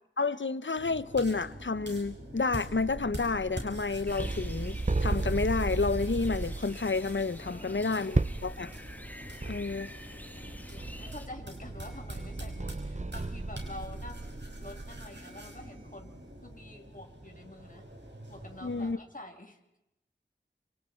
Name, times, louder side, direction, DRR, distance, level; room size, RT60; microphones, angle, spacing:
voice 1, 0.2-8.7 9.5-9.9 18.6-19.0, left 4 dB, 80° left, 0.9 m, -30 dB
sound 1, 0.8-18.9, right 1 dB, 65° right, 5.7 m, -46 dB
sound 2, 2.7-6.8 8.1-8.6 9.0-9.1 9.4-10.0 10.4-15.1, right 3 dB, 40° right, 0.8 m, -34 dB
sound 3, 4.0-11.3, equal, 10° left, 2.0 m, -46 dB
voice 2, 7.4-8.0 9.8-14.3 14.6-17.9 18.3-19.8, left 1 dB, 45° left, 3.2 m, -48 dB
28.0 x 26.5 x 4.5 m
wide cardioid pair, 40°, 19 cm